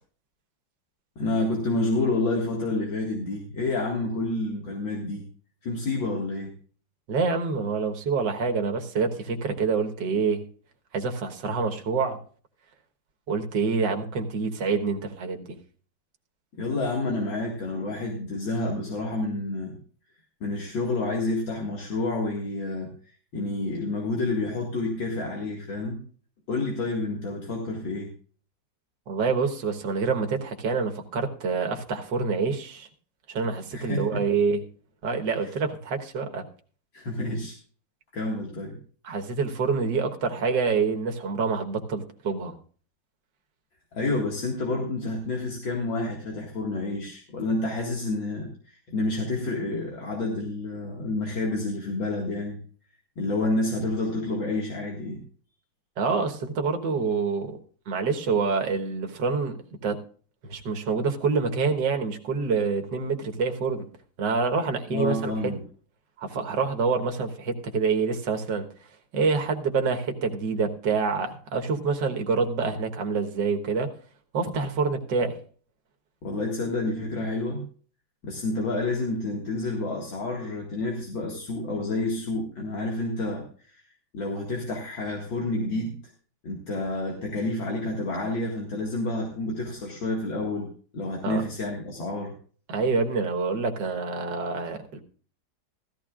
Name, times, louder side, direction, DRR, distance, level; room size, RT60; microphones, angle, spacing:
voice 1, 1.2-5.2 5.6-6.5 16.5-19.8 20.4-26.0 26.5-28.1 33.7-34.2 36.9-37.5 38.1-38.8 43.9-52.6 53.2-55.2 64.9-65.6 76.2-77.6 78.2-83.4 83.7-83.8 84.1-85.9 86.4-90.7 90.9-92.3, left 2 dB, 75° left, -1 dB, 2.8 m, -29 dB
voice 2, 7.1-10.4 10.9-12.2 13.3-15.6 29.1-32.9 33.3-34.6 35.0-36.5 39.0-42.6 56.0-57.6 57.9-59.6 59.8-60.0 60.4-63.9 64.2-65.3 66.2-68.7 69.1-73.9 74.3-75.4 91.2-91.4 92.7-95.0, right 4 dB, 65° right, 4 dB, 2.0 m, -26 dB
16.0 x 14.0 x 2.5 m, 0.42 s
omnidirectional pair, 2.1 m